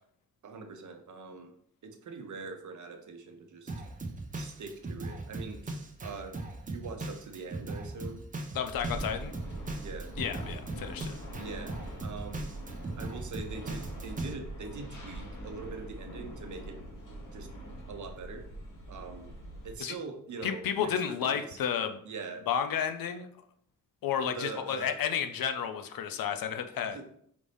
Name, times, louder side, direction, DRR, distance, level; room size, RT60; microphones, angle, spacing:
voice 1, 0.4-1.5 1.8-3.7 4.3-6.4 6.7-8.2 9.8-10.1 11.4-11.7 12.0-12.5 13.0-16.8 17.3-17.5 17.9-18.5 18.9-19.3 19.6-21.6 22.0-22.4 24.3-24.9 26.9-27.0, right 4 dB, 60° right, 5 dB, 0.7 m, -43 dB
Drum kit, 3.7-14.3, right 2 dB, 25° right, 0.5 m, -39 dB
voice 2, 8.5-9.3 10.2-11.1 19.8-20.0 20.4-22.0 22.5-23.3 24.0-27.0, left 8 dB, 90° left, 8 dB, 0.5 m, -32 dB
sound 1, 8.7-19.7, right 1 dB, 65° left, 1.1 m, -43 dB
5.0 x 2.6 x 3.4 m, 0.67 s
wide cardioid pair, 150°, 34 cm